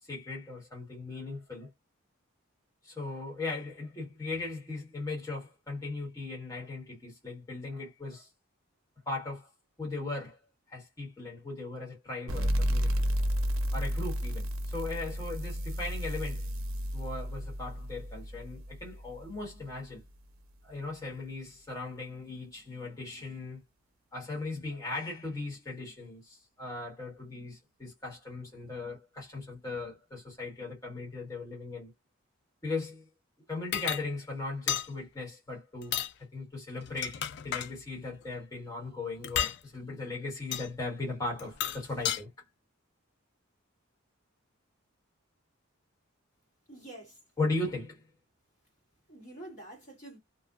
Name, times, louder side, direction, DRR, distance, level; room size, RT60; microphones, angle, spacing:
voice 1, 0.0-1.7 2.8-8.3 9.0-9.5 9.8-10.4 10.7-12.9 13.7-16.5 16.9-20.0 20.6-23.6 24.1-31.9 32.6-33.1 33.5-35.9 36.3-42.5 47.4-48.1, left 3 dB, 15° left, 1.2 m, -38 dB
sound 1, 12.3-19.6, equal, 75° right, 0.5 m, -32 dB
sound 2, 33.7-34.0 34.7-34.9 35.8-36.1 36.8-37.7 39.2-39.6 40.5-40.7 41.4-42.2, left 10 dB, 50° left, 0.3 m, -32 dB
voice 2, 46.7-47.2 49.1-50.2, right 1 dB, 35° left, 1.4 m, -47 dB
2.5 x 2.2 x 2.3 m
head